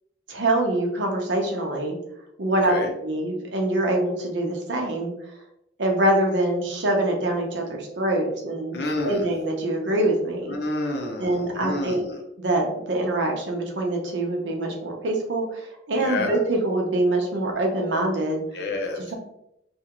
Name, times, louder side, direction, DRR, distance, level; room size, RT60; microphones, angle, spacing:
voice 1, 0.3-2.0 2.4-2.7 3.0-5.1 5.8-10.5 11.2-12.1 12.4-18.4, right 1 dB, 70° right, 1 dB, 0.7 m, -24 dB
voice 2, 8.7-9.3 10.5-12.2 15.9-16.4 18.5-19.1, left 2 dB, 55° left, 1 dB, 0.6 m, -29 dB
2.7 x 2.4 x 2.9 m, 0.80 s
head